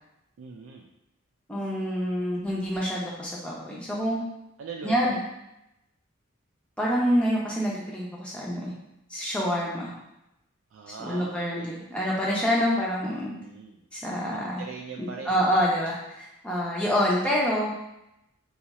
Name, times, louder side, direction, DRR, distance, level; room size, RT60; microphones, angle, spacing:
voice 1, 0.4-0.9 4.6-5.1 10.7-11.7 13.3-15.7, right 5 dB, 70° right, 0 dB, 0.3 m, -41 dB
voice 2, 1.5-4.2 4.8-5.2 6.8-8.7 9.1-9.9 11.0-13.3 13.9-14.6 15.0-17.7, equal, 5° left, -5 dB, 0.6 m, -27 dB
2.8 x 2.4 x 4.0 m, 0.86 s
head